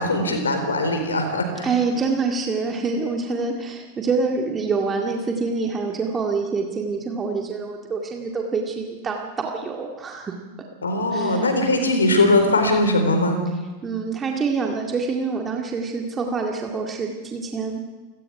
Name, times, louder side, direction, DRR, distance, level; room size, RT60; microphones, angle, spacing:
voice 1, 0.0-1.7 10.8-13.4, left 2 dB, 75° left, 6 dB, 4.3 m, -20 dB
voice 2, 1.6-10.4 11.1-11.5 13.8-17.8, right 4 dB, 20° right, 1 dB, 2.1 m, -26 dB
29.0 x 18.5 x 4.9 m, 1.2 s
figure-of-eight pair, 90°, 0 cm